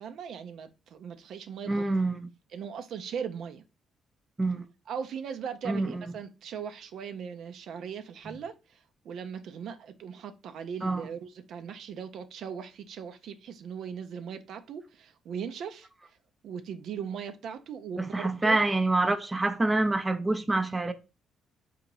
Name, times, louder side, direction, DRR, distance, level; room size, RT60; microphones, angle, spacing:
voice 1, 0.0-1.8 2.5-3.6 4.9-8.5 9.0-15.9 16.4-18.6, right 7 dB, 70° right, 0.5 m, -39 dB
voice 2, 1.7-2.3 4.4-4.6 5.6-6.1 8.3-8.4 10.8-11.1 18.0-20.9, right 2 dB, 20° right, 0.5 m, -27 dB
3.9 x 2.8 x 4.5 m
cardioid pair, 90°, 0 cm